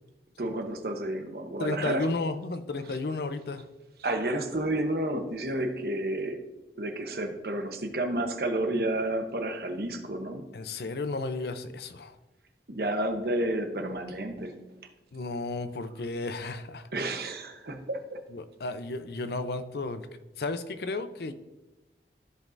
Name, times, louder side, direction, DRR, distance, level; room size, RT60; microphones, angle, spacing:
voice 1, 0.4-2.1 4.0-6.4 6.8-10.4 12.7-14.6 16.9-18.2, right 1 dB, 60° right, 5 dB, 0.9 m, -31 dB
voice 2, 1.6-3.7 10.5-12.2 15.1-16.9 18.3-20.1 20.4-21.3, left 3 dB, 60° left, 11 dB, 0.5 m, -33 dB
14.0 x 5.3 x 2.6 m, 1.1 s
head